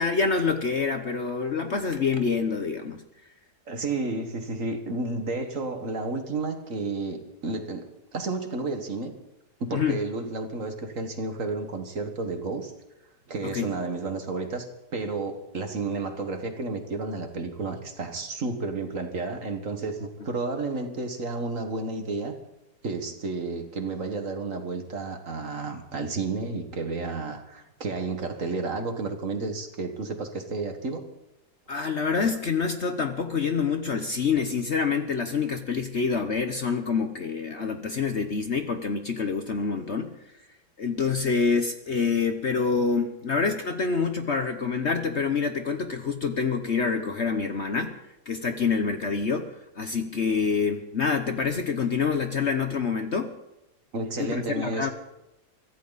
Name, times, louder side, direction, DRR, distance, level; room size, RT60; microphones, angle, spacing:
voice 1, 0.0-3.0 9.7-10.0 13.4-13.7 31.7-40.1 40.8-48.0 48.3-49.5 49.8-53.3 54.2-54.9, left 5 dB, 45° left, 7 dB, 1.1 m, -26 dB
voice 2, 3.7-9.1 9.6-12.7 13.3-22.4 22.8-31.0 53.9-54.9, right 3 dB, 50° right, 6 dB, 2.0 m, -31 dB
24.0 x 14.5 x 4.1 m, 0.91 s
omnidirectional pair, 1.9 m